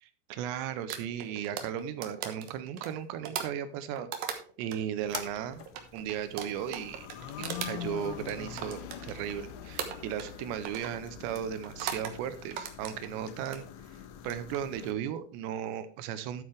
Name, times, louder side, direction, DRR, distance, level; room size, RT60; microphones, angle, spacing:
voice 1, 0.0-4.1 4.6-5.6 5.9-7.1 7.4-13.6 14.3-16.4, right 9 dB, 90° right, 11 dB, 2.9 m, -36 dB
sound 1, 0.9-4.8 5.1-9.4 9.8-10.4 10.7-11.0 11.6-12.2 12.5-13.6 14.2-14.6, right 8 dB, 65° right, 2.6 m, -39 dB
sound 2, 5.0-14.9, left 9 dB, 85° left, 3.3 m, -44 dB
11.5 x 8.5 x 3.3 m, 0.39 s
omnidirectional pair, 5.1 m